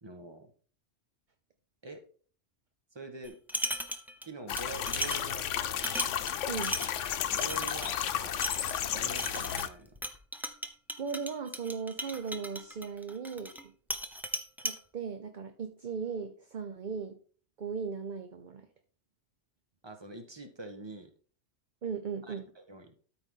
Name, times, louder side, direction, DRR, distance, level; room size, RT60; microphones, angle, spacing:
voice 1, 0.0-0.5 1.8-2.0 2.9-3.4 4.2-6.0 7.3-8.4 8.9-10.0 19.8-21.1 22.2-22.9, right 2 dB, 25° right, 5 dB, 1.3 m, -45 dB
sound 1, 3.2-4.3 4.6-13.6 13.9-14.8, equal, ahead, 0.6 m, -37 dB
sound 2, 4.5-9.7, left 10 dB, 90° left, 1.0 m, -33 dB
voice 2, 6.4-6.8 11.0-13.7 14.6-17.2 17.6-18.7 21.8-22.5, right 5 dB, 45° right, 7 dB, 0.8 m, -37 dB
13.0 x 4.9 x 3.7 m, 0.42 s
omnidirectional pair, 1.2 m